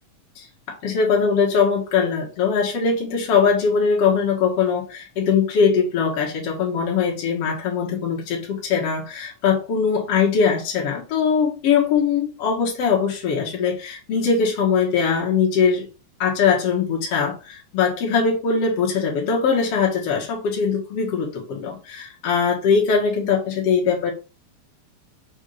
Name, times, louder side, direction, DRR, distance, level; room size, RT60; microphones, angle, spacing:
voice 1, 0.4-15.9 16.2-24.1, left 6 dB, 55° left, -2 dB, 2.5 m, -21 dB
6.8 x 3.5 x 5.0 m, 0.31 s
omnidirectional pair, 3.4 m